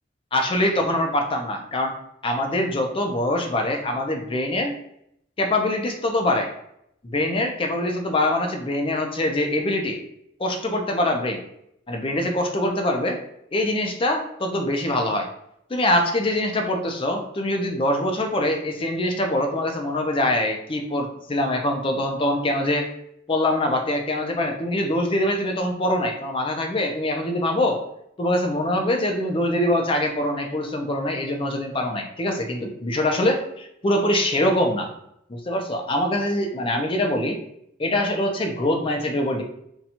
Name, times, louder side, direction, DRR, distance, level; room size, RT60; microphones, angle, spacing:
voice 1, 0.3-2.0 2.2-4.7 5.4-6.5 7.0-10.0 10.4-11.4 11.9-13.2 13.5-15.3 15.7-22.9 23.3-27.8 28.2-34.9 35.3-37.4 37.8-39.4, left 1 dB, 30° left, 3 dB, 0.5 m, -24 dB
2.8 x 2.3 x 4.0 m, 0.75 s
head